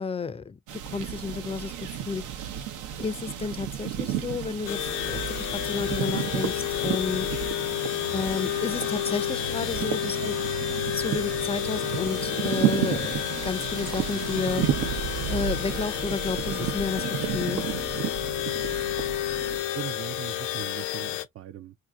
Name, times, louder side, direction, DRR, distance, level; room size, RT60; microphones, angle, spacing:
voice 1, 0.0-2.3 3.0-7.3 8.1-10.3 10.9-14.7 15.3-17.0 17.3-17.6, left 5 dB, 20° left, 0.4 m, -32 dB
sound 1, 0.7-19.6, right 10 dB, 85° right, 0.7 m, -32 dB
sound 2, 4.7-21.3, left 13 dB, 80° left, 0.6 m, -31 dB
voice 2, 19.5-21.7, right 10 dB, 50° right, 0.4 m, -39 dB
2.8 x 2.5 x 3.6 m
cardioid pair, 90°, 30 cm